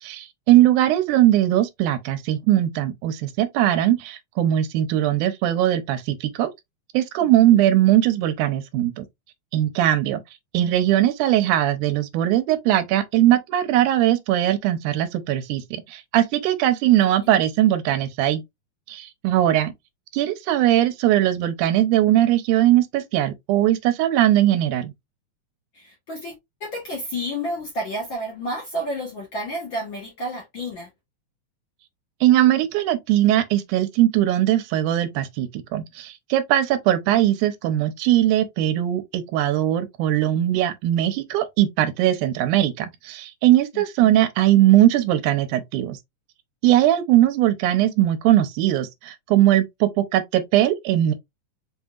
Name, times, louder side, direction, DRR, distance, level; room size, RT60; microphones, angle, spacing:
voice 1, 0.0-6.5 6.9-9.0 9.5-10.2 10.5-18.4 18.9-19.7 20.1-24.9 32.2-46.0 46.6-51.1, right 13 dB, 85° right, 2.1 m, -20 dB
voice 2, 25.7-30.9 43.7-44.2, equal, 60° left, 1.3 m, -31 dB
5.5 x 2.7 x 2.3 m
omnidirectional pair, 3.5 m